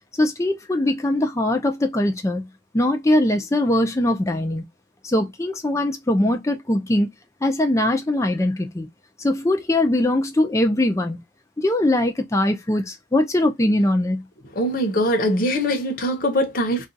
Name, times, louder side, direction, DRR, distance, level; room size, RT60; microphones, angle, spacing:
voice 1, 0.2-2.5 2.7-4.6 5.0-7.1 7.4-8.9 9.2-11.2 11.6-14.2, left 1 dB, 15° left, 0.5 m, -21 dB
voice 2, 14.5-16.9, equal, 45° left, 0.8 m, -22 dB
2.5 x 2.4 x 3.9 m
head